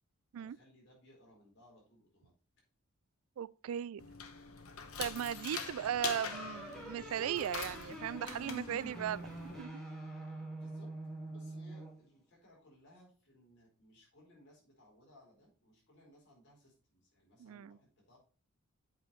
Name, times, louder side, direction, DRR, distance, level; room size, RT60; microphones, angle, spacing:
voice 1, 0.4-2.3 10.4-10.9 11.3-18.2, left 1 dB, 55° left, 4.3 m, -63 dB
voice 2, 3.4-4.0 5.0-9.3 9.6-9.8 17.4-17.8, right 9 dB, 70° right, 0.3 m, -37 dB
sound 1, 4.0-9.6, left 6 dB, 80° left, 1.0 m, -44 dB
sound 2, 6.0-12.0, right 1 dB, ahead, 2.1 m, -46 dB
8.1 x 5.5 x 4.3 m
head